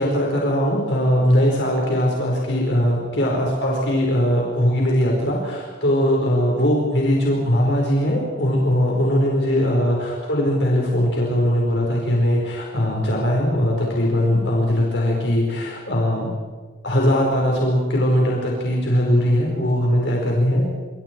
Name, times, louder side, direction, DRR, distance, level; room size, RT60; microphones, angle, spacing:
voice 1, 0.0-16.3 16.8-20.7, equal, 70° left, -2 dB, 4.7 m, -20 dB
26.5 x 26.0 x 4.6 m, 1.5 s
head